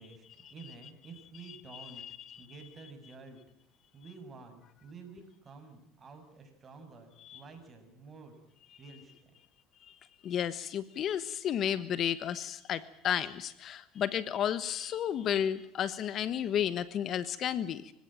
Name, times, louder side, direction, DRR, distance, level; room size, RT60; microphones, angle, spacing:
voice 1, 0.0-2.0 2.4-3.4 3.9-8.4 8.8-9.3, right 4 dB, 30° right, 6 dB, 7.2 m, -50 dB
voice 2, 1.5-2.5 7.2-7.4 10.2-17.9, left 9 dB, 45° left, 15 dB, 1.3 m, -33 dB
25.5 x 17.0 x 9.0 m, 0.78 s
supercardioid pair, 100°, 0 cm